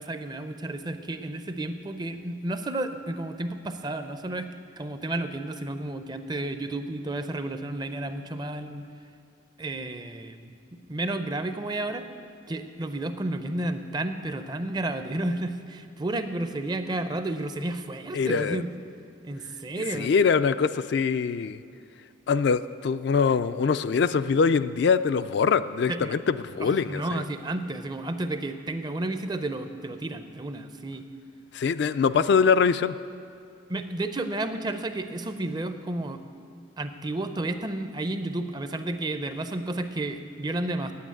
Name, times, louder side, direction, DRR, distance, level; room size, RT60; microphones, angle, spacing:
voice 1, 0.0-4.5 4.8-8.9 9.6-10.6 10.9-12.1 12.5-18.7 19.2-20.2 25.9-26.1 26.6-31.1 33.7-36.2 36.8-40.9, right 2 dB, 20° right, 9 dB, 0.5 m, -32 dB
voice 2, 18.1-18.6 19.9-21.6 22.3-27.2 31.5-33.0, left 5 dB, 60° left, 12 dB, 0.3 m, -23 dB
8.8 x 8.5 x 9.0 m, 2.4 s
head